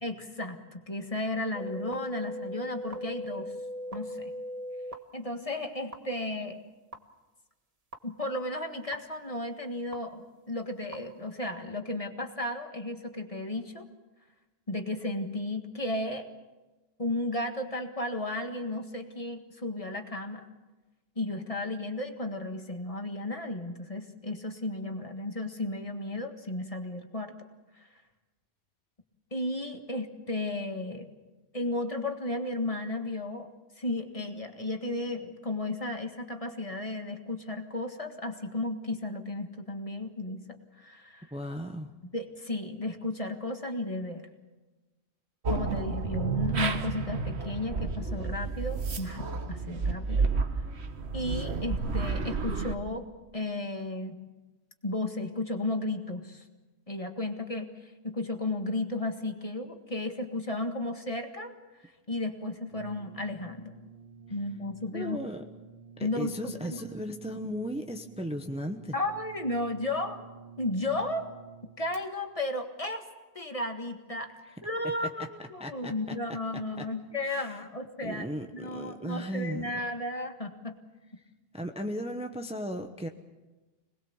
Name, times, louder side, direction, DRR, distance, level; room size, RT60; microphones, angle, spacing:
voice 1, 0.0-3.5 3.9-4.3 5.1-6.6 8.0-13.8 14.7-16.3 17.0-20.5 21.2-27.4 27.8-27.9 29.3-31.1 31.5-33.5 33.8-40.4 40.8-41.3 42.1-44.3 45.5-50.2 51.1-53.1 53.3-54.2 54.8-56.4 56.9-57.7 58.0-61.5 62.1-63.7 64.3-65.2 66.0-66.9 68.9-70.2 70.6-71.3 71.8-73.1 73.4-74.3 74.6-80.8, left 2 dB, 35° left, 5 dB, 1.9 m, -34 dB
sound 1, 1.5-4.9 5.9-6.0 6.9-7.0 7.9-8.0 8.9-9.0 9.9-10.0 10.9-11.0, equal, 35° right, 1.5 m, -38 dB
voice 2, 41.3-41.9 64.9-65.4 66.0-69.0 74.4-74.5 75.6-75.9 76.5-76.9 77.2-77.6 78.0-79.7 81.5-83.1, equal, 5° right, 5 dB, 1.0 m, -36 dB
sound 2, 45.5-52.8, right 4 dB, 85° right, 1.6 m, -31 dB
Brass instrument, 62.7-72.0, right 5 dB, 65° right, 2.9 m, -51 dB
26.0 x 20.0 x 7.2 m, 1.2 s
omnidirectional pair, 1.1 m